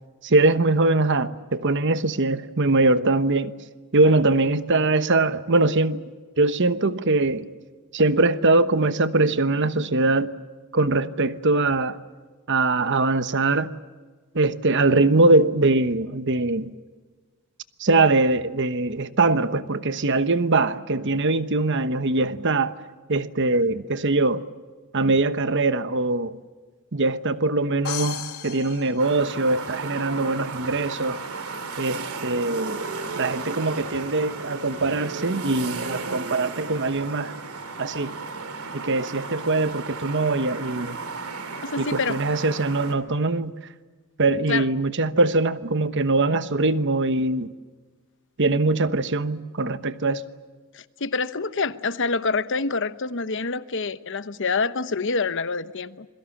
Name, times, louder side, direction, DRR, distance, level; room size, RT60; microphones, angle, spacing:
voice 1, 0.2-3.5 3.9-6.1 6.4-7.5 7.9-10.3 10.7-12.0 12.5-13.7 14.3-16.7 17.8-22.7 23.1-24.4 24.9-26.4 26.9-31.2 31.8-32.9 33.2-37.3 37.8-38.2 38.7-41.0 41.8-43.5 44.2-47.5 48.4-50.2, right 2 dB, 55° right, 1.1 m, -22 dB
sound 1, 27.8-29.8, left 8 dB, 80° left, 2.6 m, -35 dB
sound 2, 29.0-42.9, right 4 dB, 75° right, 2.8 m, -34 dB
voice 2, 41.6-42.2 44.5-44.7 50.7-56.1, left 4 dB, 55° left, 1.0 m, -26 dB
27.5 x 22.5 x 7.2 m
head